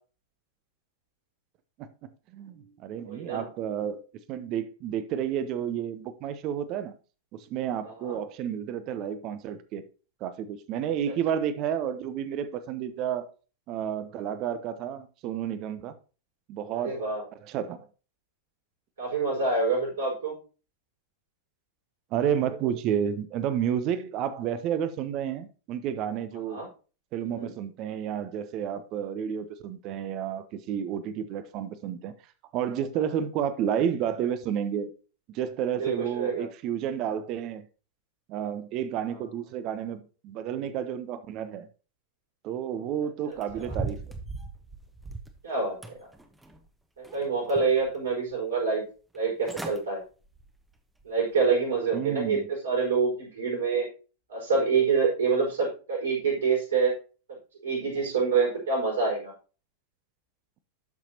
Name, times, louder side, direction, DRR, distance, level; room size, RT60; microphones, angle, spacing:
voice 1, 1.8-6.9 7.3-9.8 10.2-13.3 13.7-15.9 16.5-17.1 17.4-17.9 22.1-26.7 27.1-32.1 32.5-34.9 35.3-37.6 38.3-41.7 42.4-44.0 51.9-52.5, right 9 dB, 40° right, 0.8 m, -31 dB
voice 2, 3.0-3.5 7.8-8.2 16.8-17.2 19.0-20.3 26.5-26.7 27.4-27.5 35.8-36.5 43.2-43.7 45.4-45.9 47.1-48.8 49.1-50.0 51.0-52.4 52.6-53.9 54.3-56.9 57.6-59.3, right 4 dB, 65° right, 4.9 m, -26 dB
sound 1, 43.4-45.4 45.8-46.7 47.0-47.9 48.3-48.4 49.1-49.2 49.4-49.8 50.3-50.5 51.0-51.1, right 3 dB, 5° right, 1.0 m, -38 dB
12.0 x 5.9 x 2.8 m
figure-of-eight pair, 90°, 0 cm